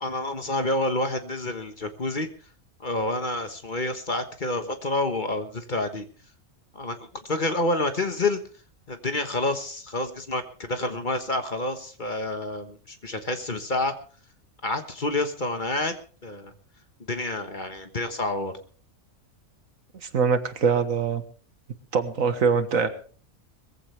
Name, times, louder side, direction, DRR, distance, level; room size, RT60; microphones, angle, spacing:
voice 1, 0.0-2.3 2.8-6.1 6.7-7.0 7.2-8.4 8.9-13.9 14.6-16.0 16.2-16.5 17.1-18.5, left 2 dB, 35° left, 7 dB, 1.4 m, -28 dB
voice 2, 20.0-21.2 21.9-22.9, right 5 dB, 75° right, 9 dB, 1.8 m, -23 dB
21.0 x 15.0 x 3.4 m, 0.40 s
omnidirectional pair, 1.4 m